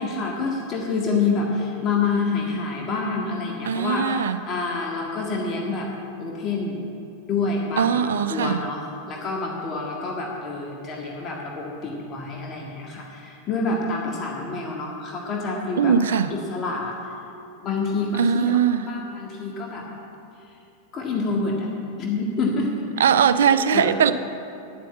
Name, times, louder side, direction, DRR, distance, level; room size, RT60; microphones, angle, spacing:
voice 1, 0.0-5.9 6.2-6.8 7.3-16.9 17.6-19.9 20.9-21.7 22.0-23.1 23.7-24.0, left 3 dB, 30° left, -1 dB, 1.8 m, -27 dB
voice 2, 3.7-4.4 7.8-8.6 15.8-16.3 18.2-18.9 23.0-24.1, right 7 dB, 65° right, 12 dB, 0.5 m, -20 dB
10.5 x 7.7 x 8.1 m, 2.8 s
figure-of-eight pair, 90°, 0 cm